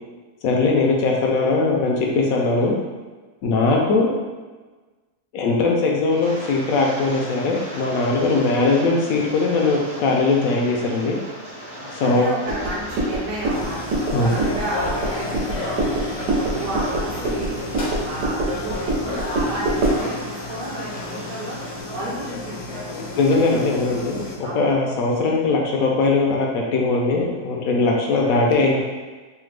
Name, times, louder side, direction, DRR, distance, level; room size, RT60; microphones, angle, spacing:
voice 1, 0.4-2.7 3.4-4.1 5.3-11.2 11.9-12.3 14.1-14.3 23.2-28.8, left 3 dB, 70° left, 0 dB, 0.9 m, -20 dB
Rain, 6.1-21.8, equal, 35° right, 0.6 m, -38 dB
voice 2, 11.8-16.0 16.5-17.6 18.0-21.6 21.9-22.8 24.4-24.7 28.2-28.5, right 1 dB, 60° right, -5 dB, 1.2 m, -32 dB
sound 1, 12.5-20.1, right 1 dB, 80° right, 1.4 m, -25 dB
sound 2, 13.5-24.4, left 2 dB, 85° left, 1.4 m, -32 dB
3.4 x 2.1 x 3.1 m, 1.3 s
omnidirectional pair, 1.7 m